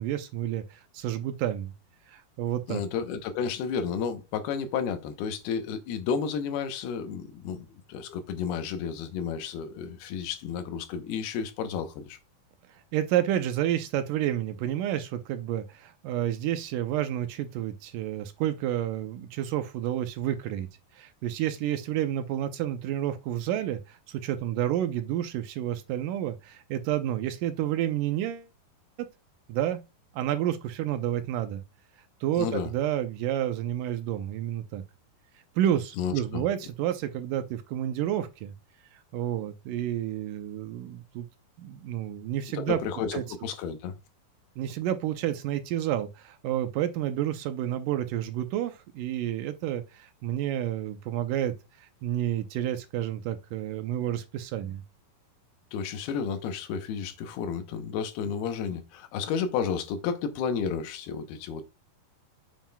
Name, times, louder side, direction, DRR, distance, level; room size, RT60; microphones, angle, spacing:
voice 1, 0.0-1.7 2.1-2.8 12.7-20.7 20.9-28.5 29.0-29.1 29.5-29.8 30.1-31.6 32.2-34.8 35.6-38.5 38.9-41.3 41.6-42.8 43.1-43.2 44.6-54.8, right 12 dB, 80° right, 1.9 m, -30 dB
voice 2, 2.7-12.2 32.4-32.7 36.0-36.4 42.5-43.9 55.7-61.6, left 6 dB, 85° left, 2.8 m, -32 dB
7.3 x 7.3 x 2.2 m
omnidirectional pair, 4.4 m